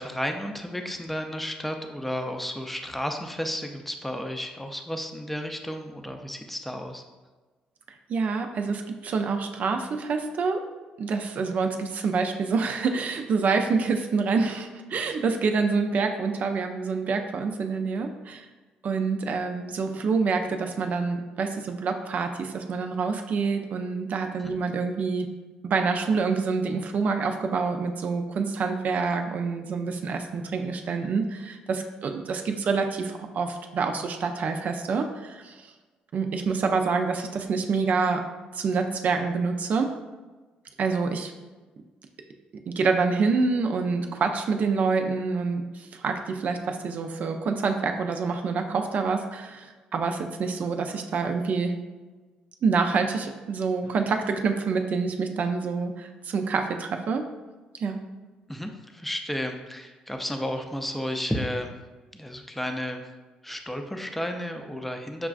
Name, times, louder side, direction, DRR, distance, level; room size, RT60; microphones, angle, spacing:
voice 1, 0.0-7.0 24.4-24.5 58.5-61.7 62.1-63.0 63.4-65.3, equal, 5° left, 5 dB, 0.4 m, -32 dB
voice 2, 8.1-10.6 11.0-18.5 18.8-25.3 25.6-35.5 36.1-38.2 38.5-39.9 40.8-41.3 42.7-51.7 52.6-57.2 57.8-58.0, right 4 dB, 55° right, 5 dB, 0.4 m, -27 dB
5.9 x 2.3 x 2.4 m, 1.3 s
supercardioid pair, 65°, 3 cm